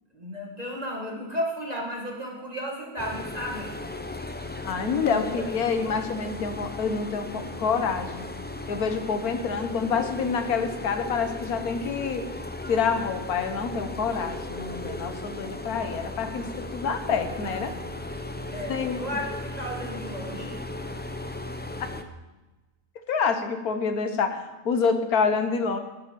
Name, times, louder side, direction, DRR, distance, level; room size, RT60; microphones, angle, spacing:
voice 1, 0.1-3.8 5.1-5.6 18.5-20.6, equal, 25° right, -2 dB, 1.9 m, -34 dB
sound 1, 3.0-22.0, left 2 dB, 15° left, 0.4 m, -36 dB
voice 2, 4.6-8.3 8.7-12.2 12.7-17.7 18.7-19.0 23.1-25.8, left 5 dB, 75° left, 7 dB, 1.7 m, -27 dB
12.0 x 7.7 x 7.6 m, 1.1 s
omnidirectional pair, 1.6 m